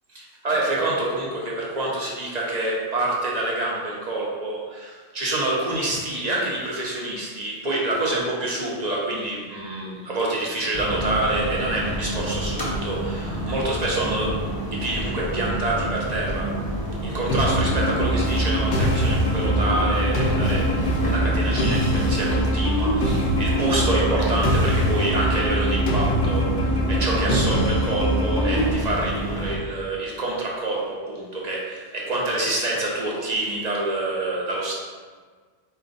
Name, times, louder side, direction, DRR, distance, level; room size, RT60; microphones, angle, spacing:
voice 1, 0.1-16.5 17.0-34.7, right 2 dB, 40° right, -4 dB, 0.9 m, -27 dB
sound 1, 10.7-29.6, right 1 dB, 25° left, 0.7 m, -29 dB
sound 2, 17.3-28.7, equal, 55° left, 0.8 m, -23 dB
4.2 x 2.5 x 3.9 m, 1.5 s
omnidirectional pair, 1.2 m